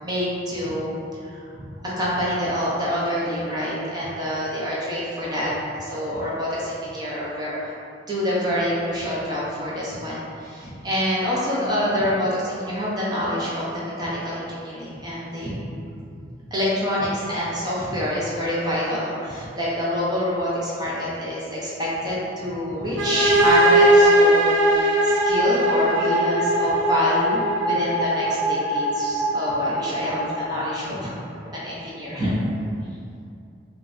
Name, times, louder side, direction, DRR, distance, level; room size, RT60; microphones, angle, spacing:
voice 1, 0.0-0.9 1.2-1.4 2.0-5.5 5.8-7.7 8.1-15.6 16.5-31.2 31.5-32.4, equal, 20° right, -7 dB, 0.5 m, -26 dB
sound 1, 23.0-30.6, right 1 dB, 80° right, 0.4 m, -20 dB
3.1 x 2.5 x 2.5 m, 2.5 s
head